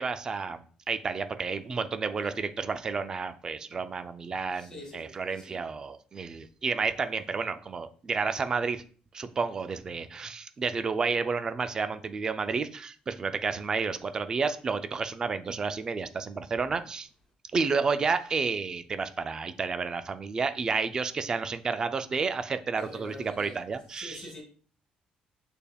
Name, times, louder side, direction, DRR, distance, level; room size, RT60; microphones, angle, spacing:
voice 1, 0.0-8.8 9.1-17.1 17.5-24.3, right 5 dB, 25° right, 0.3 m, -31 dB
voice 2, 4.5-5.6 22.8-23.6 24.0-24.4, equal, 25° left, 1.9 m, -45 dB
6.6 x 3.4 x 2.3 m
cardioid pair, 165°, 3 cm